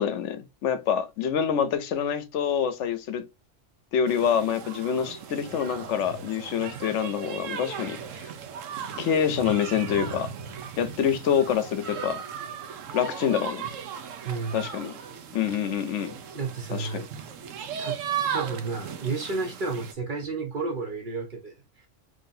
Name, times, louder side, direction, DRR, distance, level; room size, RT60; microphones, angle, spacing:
voice 1, 0.0-3.3 3.9-8.0 9.0-10.3 10.8-12.2 12.9-13.6 14.5-15.0 15.3-16.2 16.7-17.1, left 8 dB, 75° left, 0.9 m, -26 dB
sound 1, 4.1-19.9, right 7 dB, 80° right, 1.0 m, -37 dB
voice 2, 14.2-14.7 16.3-17.1 17.8-18.0 18.3-21.5, right 4 dB, 50° right, 0.7 m, -31 dB
3.8 x 3.1 x 2.6 m
omnidirectional pair, 1.3 m